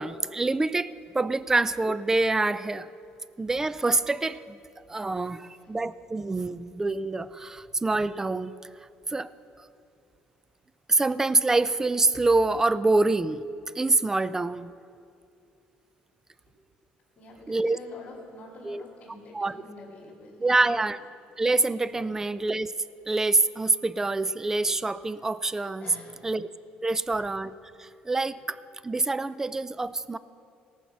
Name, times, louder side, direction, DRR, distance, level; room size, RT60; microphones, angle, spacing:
voice 1, 0.0-2.9 3.4-4.6 4.9-8.5 9.1-9.3 9.6-9.7 10.9-13.4 13.8-14.7 17.5-17.8 18.6-18.8 19.3-19.5 20.4-21.0 21.4-22.7 23.1-25.9 26.2-26.5 26.8-28.6 28.8-30.2, right 2 dB, 15° right, 16 dB, 0.4 m, -26 dB
voice 2, 5.3-5.7 16.5-16.6 17.2-20.9 21.9-22.1 25.8-26.3 26.8-27.2 28.4-28.5, left 2 dB, 45° left, -7 dB, 3.3 m, -47 dB
18.0 x 7.1 x 6.0 m, 2.5 s
cardioid pair, 105°, 3 cm